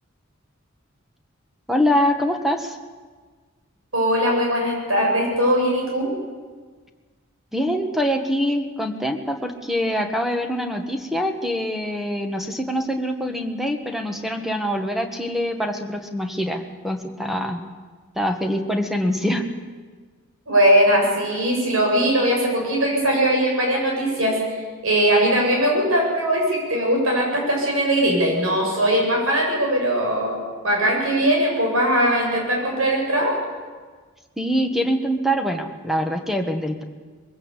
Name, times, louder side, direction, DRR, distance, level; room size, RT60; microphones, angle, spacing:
voice 1, 1.7-2.8 7.5-17.6 18.1-19.5 34.4-36.8, equal, ahead, 5 dB, 1.6 m, -24 dB
voice 2, 3.9-6.1 20.5-33.3, right 1 dB, 80° right, -1 dB, 7.9 m, -20 dB
22.0 x 16.0 x 8.3 m, 1.5 s
head